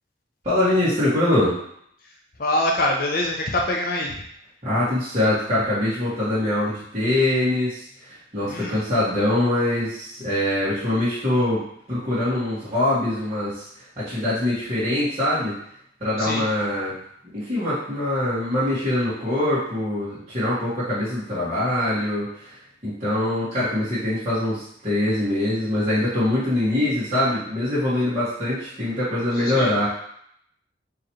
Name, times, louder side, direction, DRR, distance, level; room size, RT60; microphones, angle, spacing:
voice 1, 0.4-1.6 4.6-13.7 14.0-15.6 16.0-17.0 17.3-22.5 22.8-29.9, left 1 dB, 35° right, -13 dB, 1.8 m, -23 dB
voice 2, 2.4-4.2 8.5-8.8 16.2-16.4 29.4-29.7, left 1 dB, 50° left, 1 dB, 0.6 m, -24 dB
4.6 x 3.1 x 3.1 m, 0.68 s
head